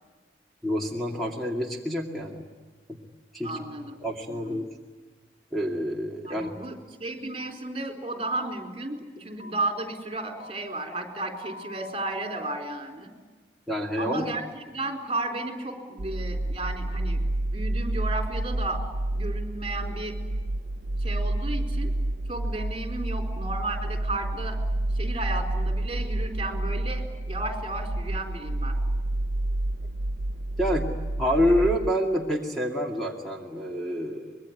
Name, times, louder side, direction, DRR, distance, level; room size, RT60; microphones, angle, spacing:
voice 1, 0.6-2.4 2.9-3.0 3.3-3.6 4.0-4.7 5.5-6.5 13.7-14.3 30.6-30.9 31.2-34.4, equal, ahead, 0 dB, 2.3 m, -27 dB
voice 2, 3.4-4.0 4.3-4.7 6.2-6.7 7.0-13.1 14.0-17.2 17.5-18.8 19.1-20.2 21.0-21.9 22.3-24.6 24.9-28.8, right 2 dB, 30° right, 4 dB, 4.2 m, -33 dB
sound 1, 6.4-6.5 7.4-7.5 8.4-8.5 9.4-9.5 10.4-10.5 11.4-11.9, left 3 dB, 80° left, 5.0 m, -45 dB
sound 2, 16.0-31.9, right 1 dB, 80° right, 0.8 m, -29 dB
25.5 x 22.0 x 9.6 m, 1.3 s
head